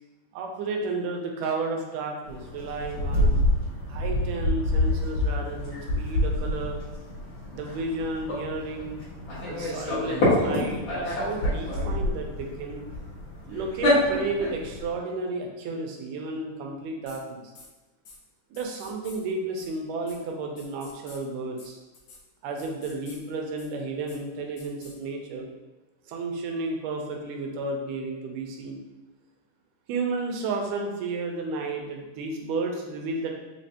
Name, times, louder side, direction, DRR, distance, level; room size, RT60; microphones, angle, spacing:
voice 1, 0.3-3.4 3.9-6.8 7.5-9.0 9.5-12.8 13.5-17.4 18.5-21.8 22.4-25.5 26.1-28.8 29.9-33.3, right 3 dB, 85° right, 2 dB, 2.2 m, -32 dB
sound 1, 2.3-14.9, left 1 dB, 50° left, 2.4 m, -27 dB
sound 2, 17.1-17.2 17.5-17.7 18.0-18.2 18.5-19.2 19.6-19.7 20.1-20.2 20.6-21.2 21.6-21.7 21.9-22.2 22.6-23.2 23.6-23.7 24.1-24.2 24.6-24.9, left 4 dB, 70° left, 1.9 m, -48 dB
5.7 x 3.1 x 2.8 m, 1.2 s
omnidirectional pair, 3.6 m